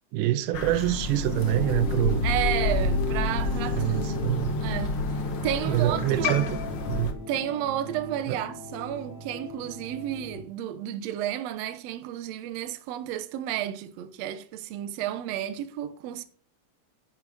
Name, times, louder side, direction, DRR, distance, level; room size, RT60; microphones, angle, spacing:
voice 1, 0.1-2.2 2.9-3.0 3.8-4.6 5.6-6.6 6.9-7.2 8.3-8.4, right 14 dB, 85° right, 2.2 m, -26 dB
Crow, 0.5-7.1, left 4 dB, 60° left, 1.2 m, -30 dB
sound 1, 1.2-10.4, left 1 dB, 45° left, 5.0 m, -34 dB
voice 2, 2.2-4.3 4.6-5.0 5.4-6.4 7.3-16.2, right 11 dB, 65° right, 1.8 m, -32 dB
9.9 x 8.7 x 3.4 m
omnidirectional pair, 3.6 m